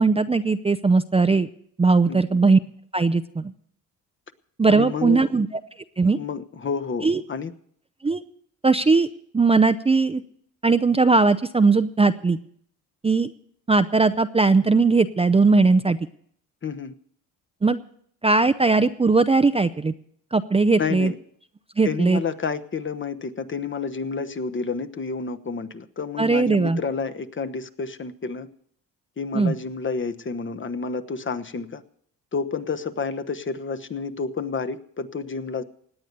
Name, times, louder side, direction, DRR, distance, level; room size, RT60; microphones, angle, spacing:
voice 1, 0.0-1.5 1.8-2.6 2.9-3.5 4.6-5.5 6.0-6.2 7.0-7.2 8.0-8.2 8.6-9.1 9.3-10.2 10.6-12.4 13.0-13.3 13.7-16.0 17.6-17.8 18.2-19.9 20.3-21.1 21.8-22.2 26.2-26.8 29.3-29.5, right 4 dB, 15° right, 11 dB, 0.6 m, -19 dB
voice 2, 4.7-5.3 6.1-7.5 16.6-16.9 20.8-21.2 21.8-28.5 29.2-31.8 32.3-35.6, left 5 dB, 35° left, 11 dB, 1.0 m, -30 dB
17.5 x 9.3 x 6.7 m, 0.64 s
cardioid pair, 75°, 35 cm